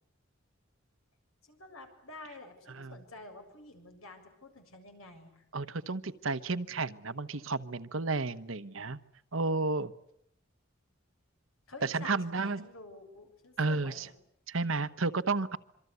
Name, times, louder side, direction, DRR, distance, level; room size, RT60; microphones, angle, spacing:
voice 1, 1.4-5.5 11.7-14.1, left 2 dB, 85° left, 5 dB, 7.0 m, -49 dB
voice 2, 5.5-9.0 9.3-9.9 11.8-12.7 13.6-14.1 14.5-15.6, right 3 dB, 70° right, 12 dB, 1.2 m, -32 dB
26.5 x 25.0 x 8.2 m, 0.74 s
head